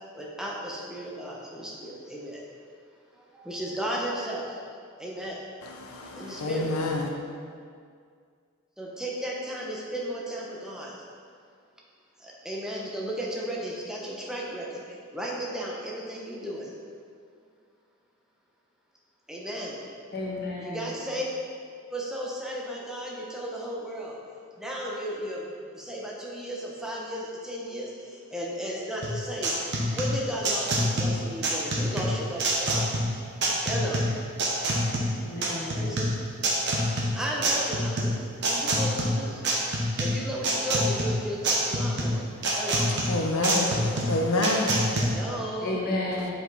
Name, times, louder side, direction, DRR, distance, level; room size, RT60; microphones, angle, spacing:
voice 1, 0.2-2.4 3.3-4.4 5.0-5.4 6.2-6.7 8.8-10.9 12.2-14.8 15.1-16.7 19.3-19.7 20.6-21.2 21.9-24.1 24.6-25.5 25.7-27.9 28.3-29.5 29.9-32.9 33.6-34.0 35.8-36.0 37.2-39.4 40.0-42.2 42.5-42.9 45.0-45.7, equal, 5° right, -4 dB, 0.9 m, -34 dB
voice 2, 5.6-7.2 42.8-44.8, left 2 dB, 85° left, 1 dB, 0.9 m, -28 dB
voice 3, 20.1-20.9 35.2-35.8 45.6-46.3, left 2 dB, 45° left, -5 dB, 1.5 m, -32 dB
sound 1, 29.0-45.0, right 1 dB, 55° right, 1.0 m, -26 dB
7.8 x 5.1 x 4.1 m, 2.2 s
head